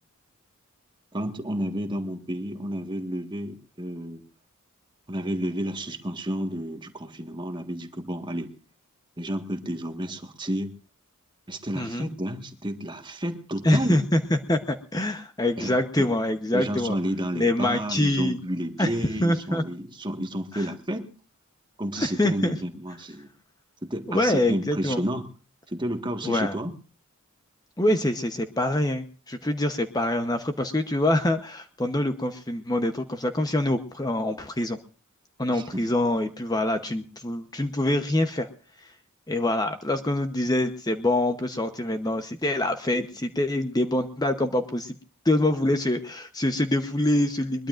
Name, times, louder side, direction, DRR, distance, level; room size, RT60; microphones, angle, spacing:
voice 1, 1.1-4.2 5.1-8.5 9.2-10.7 11.5-14.0 15.6-16.1 16.5-21.1 21.8-23.3 23.8-25.3 25.7-26.7 35.5-35.9, equal, 20° right, 5 dB, 1.5 m, -31 dB
voice 2, 11.7-12.1 13.6-17.0 17.3-18.4 18.8-18.9 19.2-19.6 20.5-20.7 22.0-22.6 24.1-25.0 26.2-26.5 27.8-34.8 35.4-38.5 38.8-38.9 39.3-45.0 45.2-47.7, left 1 dB, 15° left, 7 dB, 0.9 m, -25 dB
22.0 x 21.5 x 2.5 m, 0.40 s
head